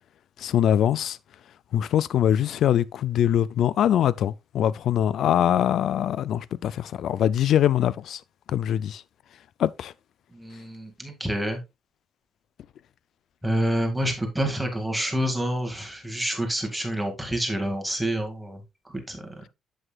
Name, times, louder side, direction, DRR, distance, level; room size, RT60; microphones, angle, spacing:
voice 1, 0.4-1.2 1.7-8.2 8.5-9.0 9.6-9.9, left 10 dB, 65° left, 0.4 m, -23 dB
voice 2, 10.3-11.6 13.4-19.4, equal, 5° right, 2.1 m, -28 dB
7.9 x 7.8 x 2.3 m
cardioid pair, 125°, 0 cm